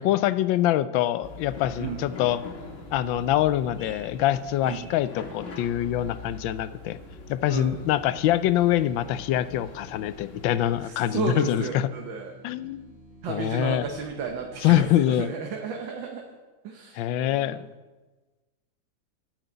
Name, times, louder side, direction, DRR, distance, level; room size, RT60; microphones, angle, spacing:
voice 1, 0.0-2.4 2.9-7.0 7.3-11.9 12.4-12.8 13.3-13.9 14.6-15.3 16.9-17.6, left 12 dB, 85° left, 15 dB, 1.3 m, -24 dB
sound 1, 1.2-10.8, left 3 dB, 40° left, 1.9 m, -42 dB
voice 2, 1.8-2.1 4.6-4.9 7.5-7.8 10.8-12.3 13.2-16.2 16.6-17.7, right 5 dB, 80° right, 2 dB, 1.8 m, -33 dB
sound 2, 5.3-14.8, right 1 dB, 35° right, 1.7 m, -53 dB
10.5 x 8.1 x 8.8 m, 1.2 s
omnidirectional pair, 2.0 m